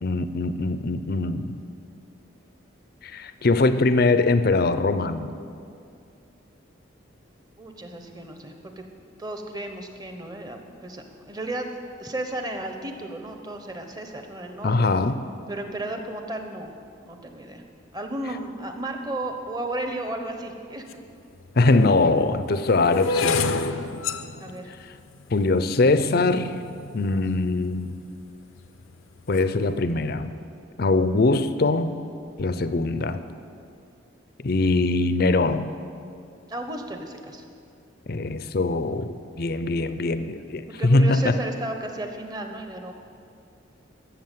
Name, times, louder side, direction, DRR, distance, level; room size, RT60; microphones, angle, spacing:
voice 1, 0.0-1.4 3.0-5.3 14.6-15.2 21.6-23.7 25.3-26.5 26.9-27.9 29.3-30.3 30.8-32.0 32.4-33.2 34.4-35.7 38.1-41.3, left 3 dB, 50° left, 11 dB, 0.5 m, -22 dB
voice 2, 7.6-8.8 9.2-11.7 12.0-14.9 15.5-16.7 17.0-17.6 17.9-21.0 24.4-24.7 36.5-37.4 40.8-42.9, right 1 dB, 20° right, 5 dB, 1.0 m, -34 dB
sound 1, 20.9-21.0 21.7-27.9 28.6-28.9 29.2-29.6, left 3 dB, 90° left, 0.7 m, -30 dB
13.5 x 7.1 x 9.2 m, 2.4 s
head